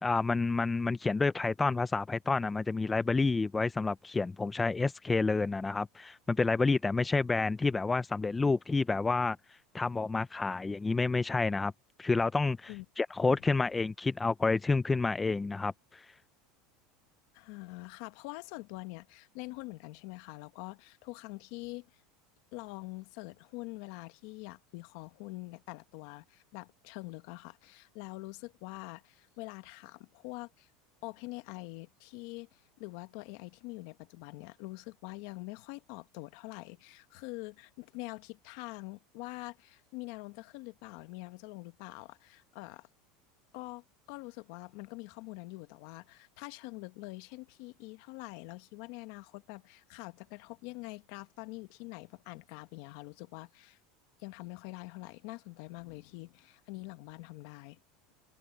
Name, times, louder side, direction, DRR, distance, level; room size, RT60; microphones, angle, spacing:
voice 1, 0.0-9.4 9.7-11.7 12.0-16.0, left 3 dB, 15° left, 0.4 m, -29 dB
voice 2, 17.3-21.9 22.5-30.7 31.0-42.9 43.5-53.8 54.2-57.8, left 23 dB, 65° left, 1.4 m, -45 dB
supercardioid pair, 130°, 0 cm